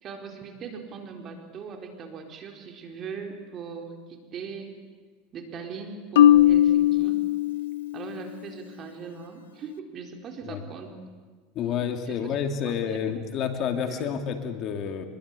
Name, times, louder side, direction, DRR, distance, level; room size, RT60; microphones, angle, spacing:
voice 1, 0.0-4.8 5.3-7.2 7.9-11.0 12.1-12.2 12.6-13.0 13.8-14.1, right 5 dB, 40° right, 3 dB, 4.2 m, -40 dB
Marimba xylophone, 6.2-8.2, left 11 dB, 90° left, 0.8 m, -19 dB
voice 2, 11.5-15.1, left 7 dB, 45° left, 5 dB, 2.6 m, -29 dB
25.0 x 22.0 x 8.4 m, 1.5 s
supercardioid pair, 125°, 0 cm